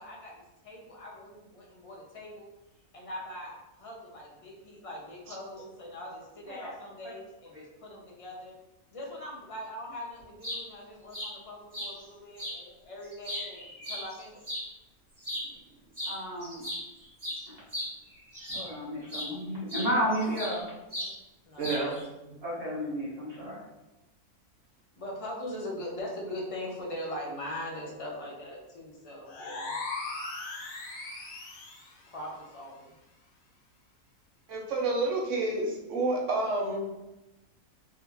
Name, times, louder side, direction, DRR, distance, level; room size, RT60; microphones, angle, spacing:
voice 1, 0.0-2.5 2.9-8.5 8.9-14.5 21.0-21.1 21.5-21.7 25.0-29.8 32.1-32.9, left 1 dB, 40° left, -2 dB, 0.5 m, -41 dB
sound 1, 10.2-10.6 11.1-11.3 11.7-11.9 12.4-12.6 13.0-14.6 15.2-15.5 15.9-16.2 16.4-18.7 19.1-19.3 19.7-20.6 20.9-21.1 21.6-22.0, equal, 25° right, 1.4 m, -36 dB
voice 2, 16.0-16.6 17.5-17.6 18.5-20.7 22.4-23.6, equal, 45° right, -8 dB, 1.3 m, -32 dB
voice 3, 21.6-21.9 34.5-37.0, right 2 dB, 65° right, -2 dB, 1.0 m, -29 dB
sound 2, 29.3-32.0, left 3 dB, 75° left, 1.1 m, -38 dB
3.5 x 2.4 x 2.9 m, 0.99 s
omnidirectional pair, 1.5 m